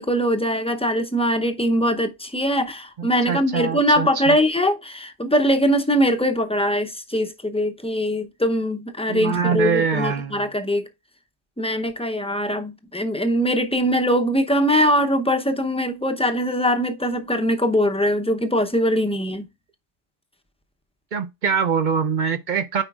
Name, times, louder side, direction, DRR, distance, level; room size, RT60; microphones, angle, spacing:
voice 1, 0.0-10.9 11.6-19.5, equal, 5° left, 0.6 m, -22 dB
voice 2, 3.0-4.4 9.1-10.5 21.1-22.8, right 6 dB, 55° right, 0.6 m, -24 dB
8.8 x 5.0 x 2.4 m
omnidirectional pair, 1.1 m